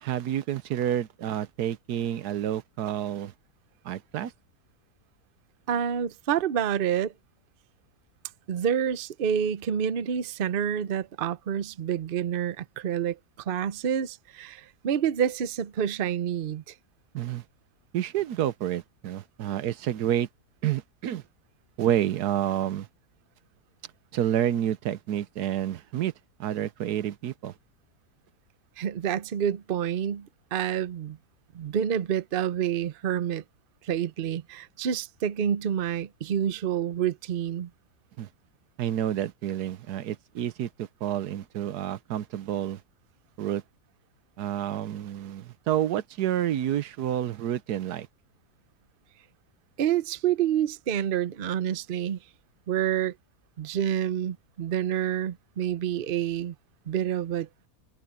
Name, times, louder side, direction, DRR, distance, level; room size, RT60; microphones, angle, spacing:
voice 1, 0.0-3.3 3.8-4.3 17.1-17.4 17.9-20.3 20.6-21.2 21.8-22.9 24.1-26.1 26.4-27.5 38.2-38.3 38.8-42.8 43.4-43.6 44.4-48.1, right 11 dB, 80° right, 1.3 m, -29 dB
voice 2, 5.7-7.1 8.5-13.2 13.5-16.6 28.8-31.2 31.5-33.4 33.8-37.7 49.8-52.2 52.7-53.1 53.6-56.5 56.9-57.5, right 9 dB, 50° right, 0.7 m, -28 dB
open air
omnidirectional pair, 1.7 m